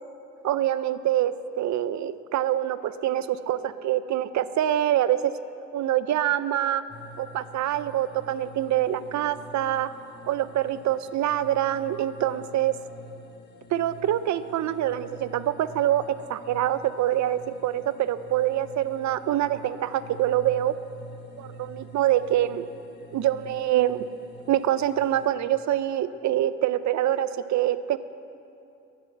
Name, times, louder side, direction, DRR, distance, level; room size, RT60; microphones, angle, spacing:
voice 1, 0.4-5.2 5.7-6.8 7.2-9.9 10.3-12.7 13.7-16.0 16.3-20.7 21.4-22.7 23.1-24.0 24.5-28.0, right 12 dB, 70° right, 14 dB, 0.7 m, -25 dB
sound 1, 6.9-25.3, left 1 dB, 35° left, 1.3 m, -47 dB
11.0 x 10.0 x 8.5 m, 2.7 s
cardioid pair, 90°, 30 cm